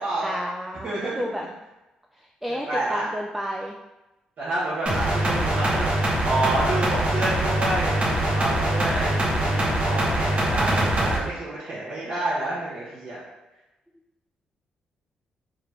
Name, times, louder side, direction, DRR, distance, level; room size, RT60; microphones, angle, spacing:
voice 1, 0.2-1.5 2.2-3.7, equal, 5° right, 0 dB, 0.3 m, -31 dB
voice 2, 0.8-1.2 2.7-3.1 4.4-13.2, right 2 dB, 60° right, -10 dB, 1.2 m, -29 dB
sound 1, 4.9-11.2, right 1 dB, 40° right, 1.0 m, -23 dB
3.8 x 2.2 x 3.2 m, 1.0 s
hypercardioid pair, 50°, 3 cm